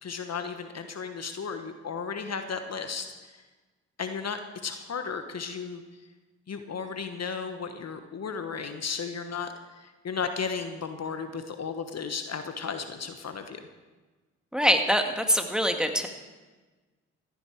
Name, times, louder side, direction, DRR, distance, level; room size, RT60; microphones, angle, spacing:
voice 1, 0.0-3.4 4.0-5.8 6.5-9.5 9.8-13.7, left 5 dB, 45° left, 7 dB, 1.3 m, -34 dB
voice 2, 14.5-16.1, equal, ahead, 5 dB, 1.8 m, -24 dB
14.0 x 11.5 x 4.8 m, 1.3 s
hypercardioid pair, 40°, 35 cm